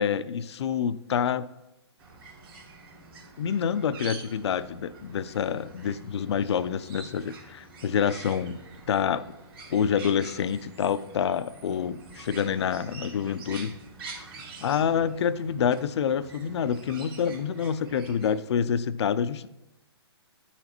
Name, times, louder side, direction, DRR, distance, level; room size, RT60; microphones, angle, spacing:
voice 1, 0.0-1.5 3.4-8.6 8.9-9.2 9.7-13.7 14.6-19.5, left 7 dB, 70° left, 14 dB, 0.4 m, -27 dB
sound 1, 2.0-18.4, right 3 dB, 55° right, 1.9 m, -46 dB
10.5 x 4.1 x 2.9 m, 0.93 s
hypercardioid pair, 140°, 14 cm